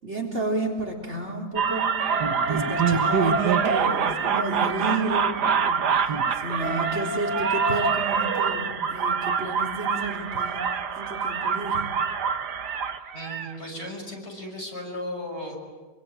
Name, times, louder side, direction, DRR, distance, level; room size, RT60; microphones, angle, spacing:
voice 1, 0.0-2.0 2.4-10.7 10.9-11.9, right 2 dB, 40° right, 2 dB, 4.0 m, -31 dB
sound 1, 1.6-13.5, right 6 dB, 75° right, 1.9 m, -25 dB
voice 2, 13.1-15.6, left 1 dB, 40° left, 1 dB, 6.6 m, -35 dB
26.5 x 24.5 x 9.1 m, 1.4 s
omnidirectional pair, 1.8 m